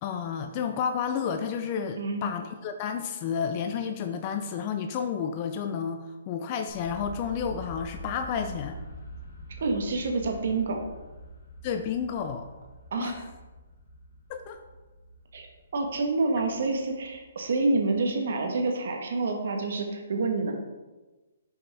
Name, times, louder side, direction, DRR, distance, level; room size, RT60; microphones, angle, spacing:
voice 1, 0.0-8.8 11.6-12.5 13.0-13.1 14.3-14.6, left 7 dB, 30° left, 6 dB, 0.4 m, -31 dB
sound 1, 6.7-18.5, equal, 70° left, 1.8 m, -45 dB
voice 2, 9.6-10.8 12.9-13.2 15.3-15.5 15.7-20.5, right 3 dB, 65° right, 3 dB, 1.2 m, -27 dB
6.1 x 4.9 x 3.5 m, 1.2 s
hypercardioid pair, 155°, 0 cm